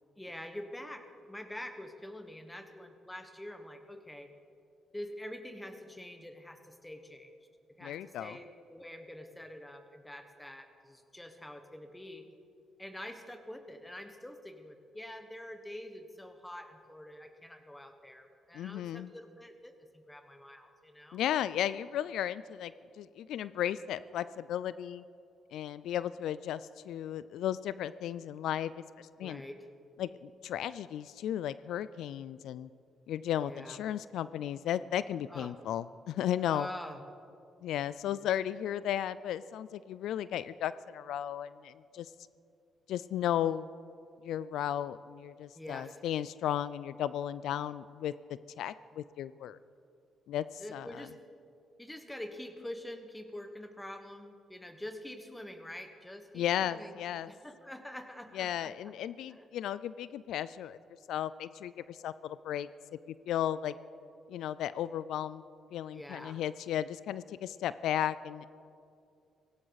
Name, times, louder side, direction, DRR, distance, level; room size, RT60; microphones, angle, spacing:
voice 1, 0.2-4.3 4.9-7.3 7.8-12.2 12.8-21.2 29.2-29.7 33.4-33.8 35.3-35.5 36.4-37.0 45.5-46.0 50.6-51.1 51.8-57.0 57.3-58.9 59.3-59.5 65.9-66.4, left 1 dB, 10° left, 7 dB, 1.4 m, -46 dB
voice 2, 7.8-8.4 18.5-19.1 21.1-25.0 25.5-29.4 30.0-32.7 33.1-36.7 37.6-42.1 42.9-43.7 44.2-48.1 48.6-49.6 50.3-50.9 56.3-57.3 58.3-60.8 61.1-62.7 63.1-63.7 64.3-65.4 65.7-68.5, left 11 dB, 80° left, 16 dB, 0.3 m, -35 dB
17.5 x 16.5 x 4.1 m, 2.4 s
cardioid pair, 90°, 0 cm